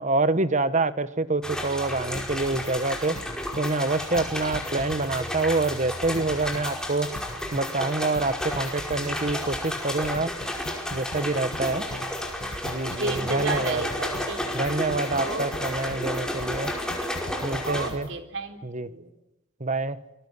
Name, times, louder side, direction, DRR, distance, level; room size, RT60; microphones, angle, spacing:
voice 1, 0.0-3.2 3.6-7.1 7.5-10.3 10.9-11.9 12.6-13.9 14.5-16.7 17.4-18.1 18.6-18.9 19.6-20.0, right 3 dB, 40° right, 13 dB, 1.3 m, -26 dB
sound 1, 1.4-17.9, left 1 dB, 5° left, 5.1 m, -32 dB
sound 2, 2.1-2.7 3.0-3.7 4.0-6.7 7.0-18.2, left 1 dB, 50° left, 2.1 m, -41 dB
voice 2, 11.6-12.1 12.9-14.4 15.1-15.7 17.6-19.1, right 3 dB, 75° right, 6 dB, 3.8 m, -33 dB
28.5 x 21.0 x 9.7 m, 0.90 s
head